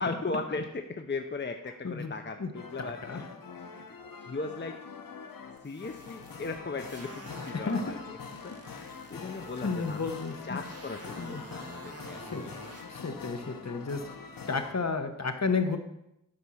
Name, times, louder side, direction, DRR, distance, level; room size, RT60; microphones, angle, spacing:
voice 1, 0.0-3.3 3.5-3.8 4.2-4.8 5.6-8.0 8.4-10.1 10.4-12.5, left 3 dB, 35° left, 5 dB, 0.7 m, -37 dB
sound 1, 2.5-14.7, left 5 dB, 80° left, 1.0 m, -44 dB
voice 2, 2.8-3.3 7.5-7.9 9.1-9.2 9.6-10.6 11.2-11.4 12.0-12.5 12.8-14.0 14.5-15.8, left 4 dB, 50° left, 7 dB, 1.1 m, -32 dB
sound 2, 5.6-7.8 8.2-12.8, right 2 dB, 45° right, 2.0 m, -50 dB
11.5 x 5.4 x 6.2 m, 0.85 s
wide cardioid pair, 70°, 33 cm